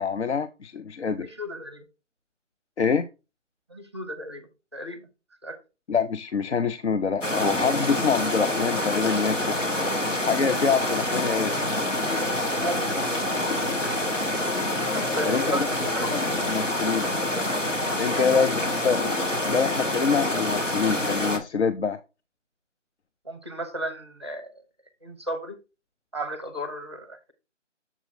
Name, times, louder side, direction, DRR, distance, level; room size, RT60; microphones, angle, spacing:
voice 1, 0.0-1.3 2.8-3.1 5.9-9.6 10.2-11.6 15.3-15.7 16.1-17.1 18.0-19.1 19.5-22.0, left 6 dB, 65° left, 0.6 m, -25 dB
voice 2, 1.2-1.9 3.7-5.1 5.4-5.6 12.6-13.5 14.9-16.2 18.1-18.3 23.2-24.6 25.0-25.6 26.1-27.3, right 1 dB, 20° right, 0.6 m, -35 dB
sound 1, 7.2-21.4, left 1 dB, 85° left, 2.0 m, -26 dB
7.2 x 4.2 x 4.0 m
figure-of-eight pair, 155°, 37 cm